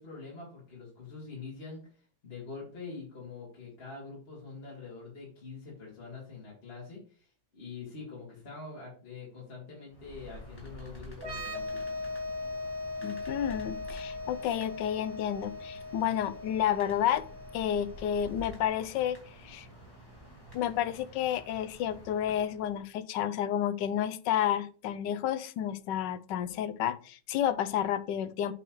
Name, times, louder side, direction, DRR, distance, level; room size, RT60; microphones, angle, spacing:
voice 1, 0.0-7.3 7.5-12.0, left 4 dB, 35° left, -4 dB, 2.4 m, -45 dB
sound 1, 9.9-22.9, equal, 15° left, 2.1 m, -49 dB
sound 2, 11.2-18.7, left 2 dB, 55° right, 3.2 m, -40 dB
voice 2, 13.0-17.2 17.5-19.2 19.4-19.7 20.5-28.5, left 10 dB, 80° left, 15 dB, 1.2 m, -30 dB
7.7 x 6.1 x 3.1 m, 0.40 s
omnidirectional pair, 1.9 m